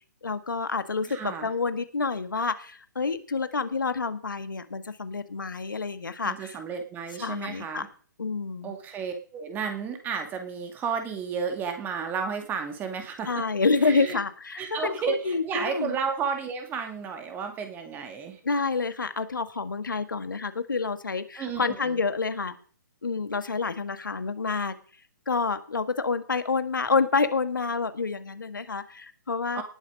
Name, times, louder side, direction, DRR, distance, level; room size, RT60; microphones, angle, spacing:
voice 1, 0.2-6.6 7.2-7.8 8.2-8.8 13.3-16.0 18.4-22.6 23.0-24.7 25.3-29.6, left 4 dB, 75° left, 10 dB, 1.8 m, -28 dB
voice 2, 1.1-1.5 6.2-7.9 8.6-13.4 13.8-14.2 14.6-18.4 21.4-22.0 29.5-29.6, right 6 dB, 20° right, 5 dB, 2.3 m, -32 dB
18.5 x 7.3 x 5.1 m, 0.43 s
figure-of-eight pair, 130°, 11 cm